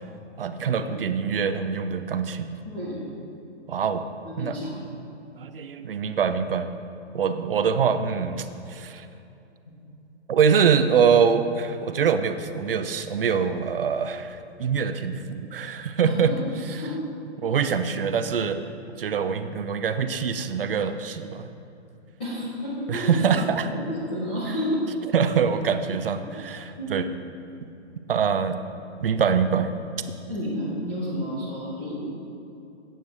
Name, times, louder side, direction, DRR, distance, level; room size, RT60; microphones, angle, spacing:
voice 1, 0.4-2.5 3.7-4.1 4.4-4.5 5.3-6.7 7.1-9.1 10.3-16.3 17.4-18.6 19.0-21.5 22.9-23.6 25.1-27.1 28.1-28.6 29.0-29.7, right 6 dB, 50° right, 9 dB, 0.6 m, -24 dB
voice 2, 2.7-3.0 4.2-4.8 7.4-7.5 14.6-14.8 16.0-16.4 16.8-17.0 22.2-23.5 23.7-24.9 26.8-26.9 30.3-32.1, equal, 10° left, -10 dB, 0.6 m, -31 dB
13.0 x 9.0 x 3.3 m, 2.8 s
hypercardioid pair, 175°, 35 cm